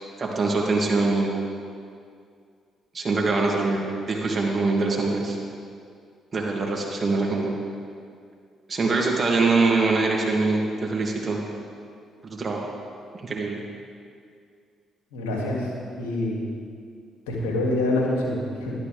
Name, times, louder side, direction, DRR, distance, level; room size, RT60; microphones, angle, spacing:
voice 1, 0.2-1.3 2.9-5.4 6.3-7.5 8.7-11.4 12.2-12.7 13.2-13.6, right 3 dB, 40° right, -2 dB, 2.5 m, -23 dB
voice 2, 15.1-15.7 16.0-16.4 17.3-18.7, left 1 dB, 90° left, -3 dB, 2.3 m, -26 dB
12.5 x 12.0 x 3.5 m, 2.2 s
hypercardioid pair, 55°, 0 cm